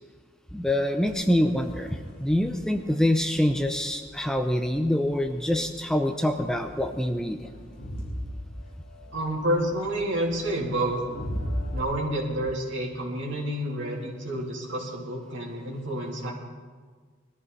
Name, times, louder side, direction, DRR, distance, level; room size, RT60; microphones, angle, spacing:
voice 1, 0.5-7.5, left 1 dB, 5° left, 6 dB, 0.6 m, -25 dB
Crowd, 1.1-11.8, equal, 50° left, 4.4 m, -39 dB
voice 2, 9.1-11.0 11.7-16.3, right 1 dB, 65° right, -2 dB, 3.3 m, -29 dB
20.5 x 13.5 x 4.1 m, 1.5 s
head